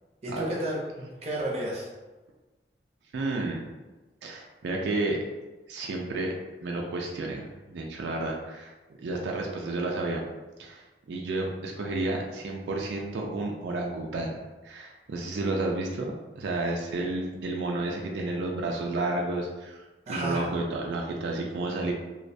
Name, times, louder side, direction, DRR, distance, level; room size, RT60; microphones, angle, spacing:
voice 1, 0.2-1.9 20.1-20.4, right 1 dB, 35° right, -4 dB, 0.6 m, -32 dB
voice 2, 3.1-3.7 4.2-5.2 5.7-6.3 6.6-8.7 9.0-10.2 10.6-21.9, right 2 dB, 85° right, 0 dB, 0.3 m, -31 dB
2.3 x 2.1 x 2.6 m, 1.2 s
head